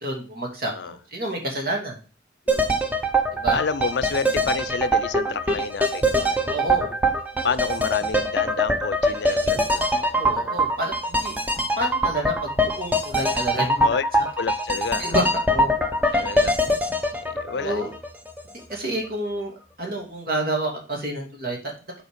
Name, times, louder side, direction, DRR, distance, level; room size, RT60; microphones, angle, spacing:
voice 1, 0.0-2.0 3.3-3.6 6.5-6.9 10.1-11.3 11.8-13.9 15.0-15.2 15.5-15.7 17.5-17.9 18.7-19.5 19.8-21.6, right 1 dB, 55° right, 2.7 m, -29 dB
sound 1, 2.5-18.4 18.7-18.8, equal, 10° right, 0.8 m, -23 dB
voice 2, 3.5-6.4 7.4-9.9 13.8-14.1 14.4-15.2 16.1-16.6 17.2-17.9, left 5 dB, 70° left, 0.5 m, -29 dB
8.0 x 4.3 x 5.0 m
head